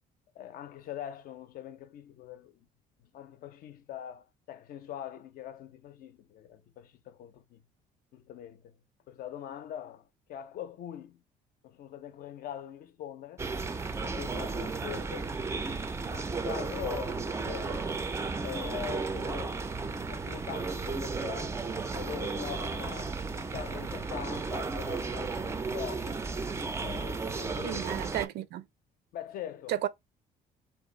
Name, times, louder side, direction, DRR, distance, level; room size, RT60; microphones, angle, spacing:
voice 1, 0.4-2.7 3.0-7.6 8.1-8.8 9.1-11.2 11.6-13.5 14.0-15.4 16.1-17.9 18.4-19.6 20.1-21.6 21.9-26.2 26.8-27.9 29.1-29.8, left 11 dB, 60° left, 0.5 m, -43 dB
sound 1, 13.4-28.3, right 4 dB, 15° right, 0.3 m, -34 dB
voice 2, 27.6-28.6 29.7-29.9, right 12 dB, 75° right, 0.4 m, -33 dB
2.5 x 2.4 x 3.8 m
cardioid pair, 110°, 17 cm